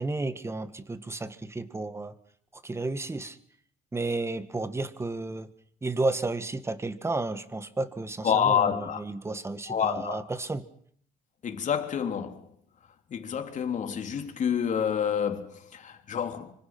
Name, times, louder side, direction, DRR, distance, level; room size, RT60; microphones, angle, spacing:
voice 1, 0.0-2.1 2.5-3.4 3.9-5.5 5.8-10.7, right 2 dB, 15° right, 2.0 m, -32 dB
voice 2, 8.2-9.0 9.7-10.2 11.4-12.4 13.1-16.5, left 8 dB, 45° left, 3.4 m, -28 dB
25.0 x 25.0 x 6.2 m
cardioid pair, 110°, 17 cm